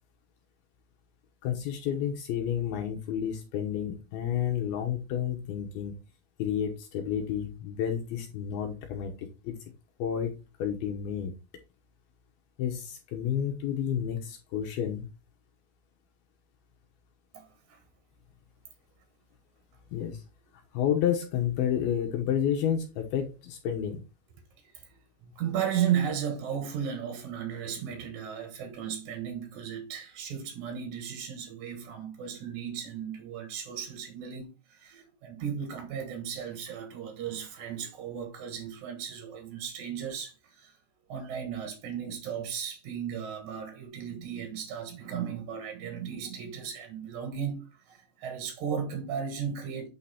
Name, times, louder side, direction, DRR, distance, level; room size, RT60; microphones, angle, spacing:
voice 1, 1.4-6.0 6.4-9.6 10.0-10.3 10.6-11.3 12.6-15.1 19.9-20.2 20.7-24.0, left 9 dB, 75° left, 2.5 m, -30 dB
voice 2, 17.3-17.8 24.6-24.9 25.2-40.8 41.1-49.9, right 8 dB, 60° right, 2.1 m, -35 dB
8.7 x 3.9 x 4.2 m
omnidirectional pair, 5.1 m